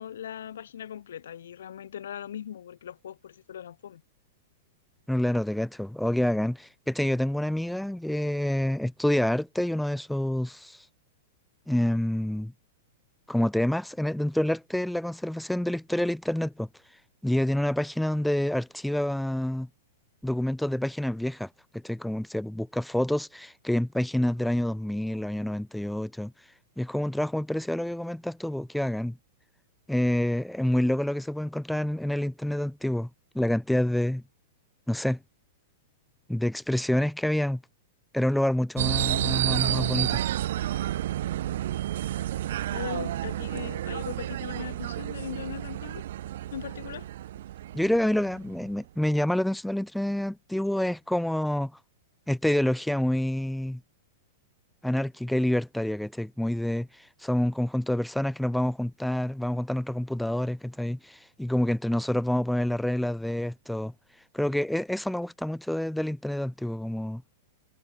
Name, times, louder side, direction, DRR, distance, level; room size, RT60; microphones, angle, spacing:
voice 1, 0.0-4.0 42.7-46.1 46.5-47.1, left 9 dB, 85° left, 1.1 m, -39 dB
voice 2, 5.1-10.8 11.7-12.5 13.3-16.7 17.2-19.7 20.2-21.5 21.7-26.3 26.8-29.2 29.9-33.1 33.3-34.2 34.9-35.2 36.3-37.6 38.1-40.2 47.7-51.7 52.3-53.8 54.8-63.9 64.3-67.2, left 1 dB, ahead, 0.4 m, -27 dB
sound 1, 38.8-48.7, right 13 dB, 65° right, 0.5 m, -30 dB
supercardioid pair, 155°, 0 cm